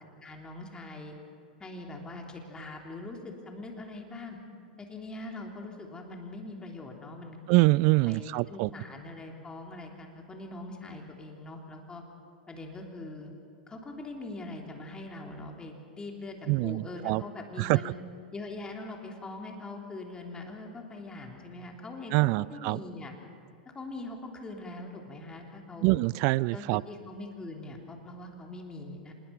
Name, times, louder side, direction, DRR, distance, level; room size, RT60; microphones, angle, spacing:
voice 1, 0.2-1.1 1.6-4.4 4.8-7.4 8.1-12.0 12.5-13.3 13.7-16.3 16.6-18.0 18.3-23.1 23.7-25.9 26.5-29.1, left 2 dB, 15° left, 1 dB, 3.3 m, -42 dB
voice 2, 7.5-8.7 16.5-17.2 17.6-17.9 22.1-22.8 25.8-26.8, right 22 dB, 50° right, 22 dB, 0.4 m, -25 dB
25.5 x 20.5 x 5.9 m, 2.3 s
hypercardioid pair, 100°, 5 cm